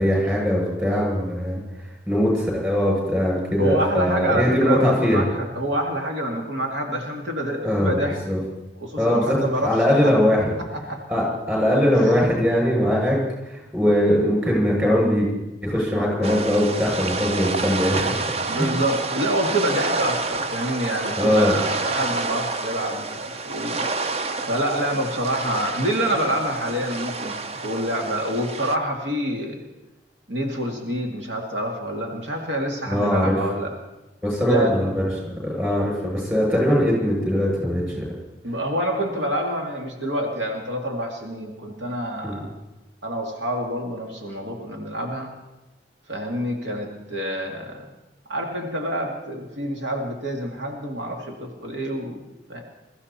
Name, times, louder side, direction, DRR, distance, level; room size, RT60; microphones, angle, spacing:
voice 1, 0.0-1.6 2.1-5.2 7.6-8.0 8.3-8.4 9.0-10.5 11.1-13.2 13.5-15.3 15.6-18.3 18.5-18.7 21.2-21.6 32.9-33.4 34.2-38.1 42.2-42.4, equal, 15° right, -3 dB, 7.1 m, -21 dB
voice 2, 3.6-8.2 8.8-10.1 10.6-11.0 11.9-12.3 18.5-23.8 24.5-27.4 27.6-29.6 30.3-33.7 34.5-34.8 38.4-42.5 43.0-45.3 46.1-47.9 48.3-52.2 52.5-52.6, right 1 dB, 85° right, 1 dB, 2.2 m, -27 dB
sound 1, 16.2-28.8, right 3 dB, 35° right, 0.6 m, -29 dB
21.5 x 14.5 x 4.3 m, 1.0 s
head